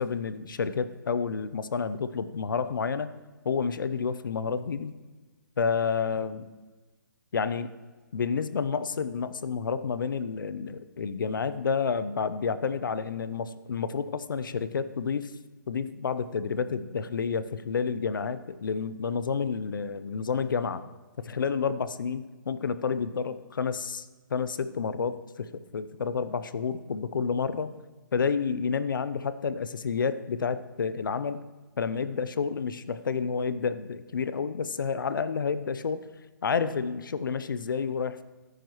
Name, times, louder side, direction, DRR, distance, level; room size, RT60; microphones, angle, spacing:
voice 1, 0.0-3.1 3.4-4.9 5.6-6.5 7.3-7.7 8.1-15.3 15.7-20.8 21.2-27.7 28.1-31.4 31.8-36.1 36.4-38.2, left 5 dB, 75° left, 14 dB, 0.7 m, -30 dB
13.5 x 10.0 x 3.1 m, 1.3 s
hypercardioid pair, 150°, 11 cm